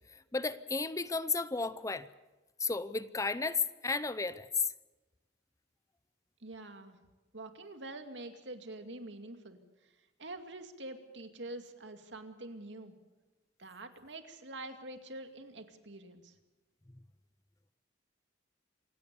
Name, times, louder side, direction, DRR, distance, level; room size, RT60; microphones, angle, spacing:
voice 1, 0.3-2.1 2.6-4.5, left 4 dB, 20° left, 14 dB, 0.7 m, -33 dB
voice 2, 6.4-7.0 7.3-9.6 10.2-12.9 13.6-16.3, right 2 dB, 75° right, 6 dB, 2.4 m, -46 dB
27.0 x 17.0 x 7.0 m, 1.2 s
head